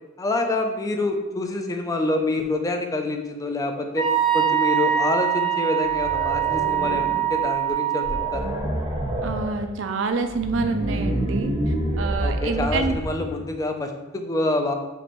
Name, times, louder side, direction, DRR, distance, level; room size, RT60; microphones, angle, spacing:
voice 1, 0.2-4.1 4.3-8.5 12.2-14.7, left 2 dB, 15° left, 4 dB, 0.4 m, -26 dB
Wind instrument woodwind instrument, 4.0-8.4, right 10 dB, 50° left, 1.2 m, -23 dB
sound 1, 5.8-7.3 7.7-7.8 8.0-9.6 10.2-13.3, right 1 dB, 20° right, 0.7 m, -28 dB
voice 2, 9.2-13.0, right 4 dB, 65° right, 7 dB, 0.4 m, -27 dB
5.9 x 3.0 x 3.0 m, 1.1 s
head